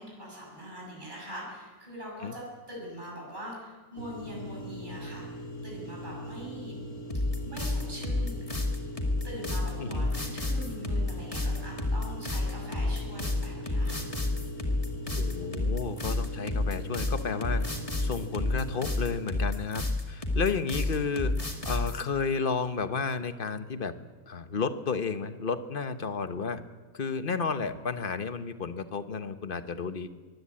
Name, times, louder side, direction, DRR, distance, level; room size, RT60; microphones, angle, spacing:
voice 1, 0.0-5.3 5.6-6.7 7.4-8.5 9.2-14.1, equal, 30° right, -2 dB, 7.2 m, -42 dB
sound 1, 4.0-19.1, equal, 70° left, 3.6 m, -41 dB
sound 2, 7.1-22.0, left 2 dB, 20° left, 2.4 m, -30 dB
voice 2, 15.2-17.7 18.0-23.9 24.3-26.6 26.9-30.1, left 5 dB, 40° left, 11 dB, 1.0 m, -32 dB
23.0 x 16.0 x 8.6 m, 1.4 s
omnidirectional pair, 1.6 m